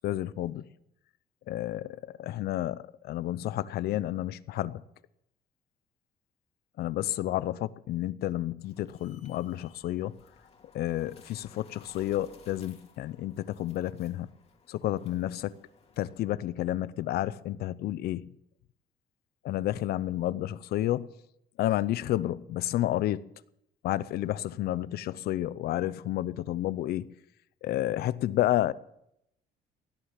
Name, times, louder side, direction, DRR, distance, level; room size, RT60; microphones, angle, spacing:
voice 1, 0.0-0.7 1.5-4.8 6.8-10.2 10.7-14.3 14.7-15.5 16.0-18.3 19.4-21.1 21.6-23.2 23.8-27.1 27.6-28.7, left 14 dB, 70° left, 0.6 m, -30 dB
sound 1, 8.6-16.2, left 5 dB, 40° left, 2.5 m, -58 dB
17.5 x 10.0 x 7.4 m
cardioid pair, 110°, 17 cm